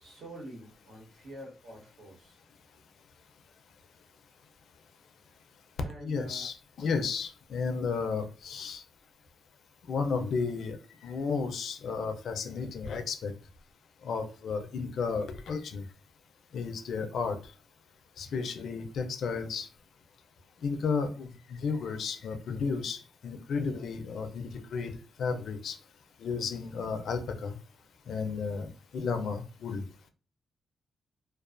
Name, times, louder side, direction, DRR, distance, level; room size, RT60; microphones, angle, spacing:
voice 1, 0.0-2.4 5.7-6.5 9.0-9.1, right 1 dB, 70° right, -2 dB, 1.2 m, -47 dB
voice 2, 6.0-8.8 9.9-10.8 11.0-13.3 14.0-15.8 16.5-17.4 18.2-19.7 20.6-24.9 25.2-25.8 26.2-27.6 28.1-29.8, left 5 dB, 70° left, 7 dB, 0.4 m, -33 dB
2.3 x 2.3 x 2.4 m, 0.36 s
cardioid pair, 95°, 0 cm